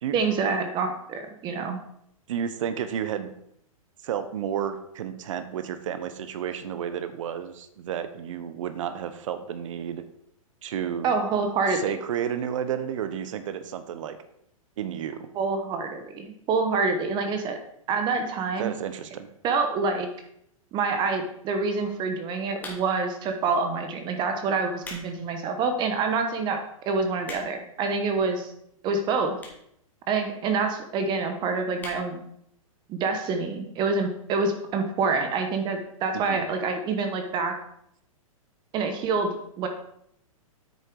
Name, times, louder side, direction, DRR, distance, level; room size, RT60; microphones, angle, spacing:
voice 1, 0.1-1.8 11.0-12.0 15.3-17.6 17.9-18.7 19.4-20.1 20.7-28.5 28.8-29.4 30.1-32.2 32.9-37.5 38.7-39.7, right 4 dB, 25° right, 6 dB, 1.1 m, -27 dB
voice 2, 2.3-3.3 4.0-10.0 10.6-11.1 11.7-14.2 14.8-15.3 18.6-19.3 36.1-36.4, right 9 dB, 60° right, 10 dB, 1.0 m, -31 dB
sound 1, 22.6-23.1 23.8-24.0 24.6-25.1 25.5-25.6 26.2-26.3 26.5-26.6 26.9-27.7 28.5-28.6 29.4-29.7 30.0-30.1 30.3-30.4 30.6-30.7 31.0-31.3 31.8-32.0 32.4-32.5 32.7-32.8, left 2 dB, 10° left, 2.0 m, -40 dB
9.0 x 6.7 x 4.7 m, 0.73 s
hypercardioid pair, 145°, 18 cm